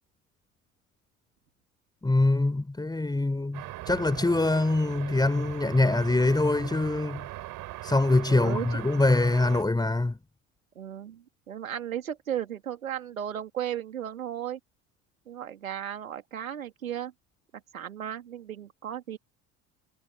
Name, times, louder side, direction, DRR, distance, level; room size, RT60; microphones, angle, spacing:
voice 1, 2.0-7.3 7.8-10.2, left 2 dB, 10° left, 5.2 m, -24 dB
sound 1, 3.5-9.6, right 17 dB, 50° right, 6.2 m, -40 dB
voice 2, 8.3-8.8 10.7-14.6 15.3-17.1 17.7-19.2, right 10 dB, 80° right, 3.1 m, -35 dB
figure-of-eight pair, 70°, 40 cm